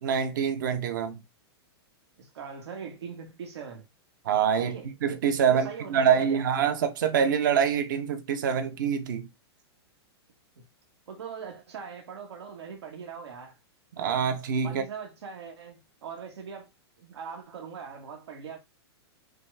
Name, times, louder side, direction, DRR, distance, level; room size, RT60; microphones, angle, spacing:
voice 1, 0.0-1.2 4.3-9.3 14.0-14.8, right 7 dB, 45° right, 0.8 m, -25 dB
voice 2, 2.2-3.8 4.6-4.9 5.5-6.5 10.6-10.7 11.1-13.6 14.6-16.7 17.0-18.6, right 6 dB, 80° right, 1.4 m, -41 dB
5.9 x 2.3 x 3.3 m
supercardioid pair, 180°, 14 cm